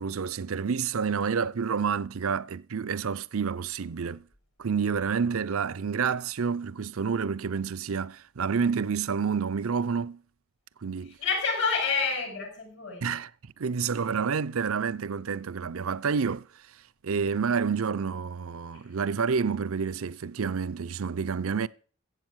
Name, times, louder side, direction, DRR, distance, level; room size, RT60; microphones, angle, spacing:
voice 1, 0.0-4.2 4.6-10.2 10.8-11.2 13.0-13.3 13.6-16.5 17.0-21.7, right 6 dB, 75° right, 0.5 m, -29 dB
voice 2, 11.0-13.1 18.7-18.9, left 5 dB, 55° left, 6.3 m, -29 dB
15.0 x 8.1 x 6.3 m
head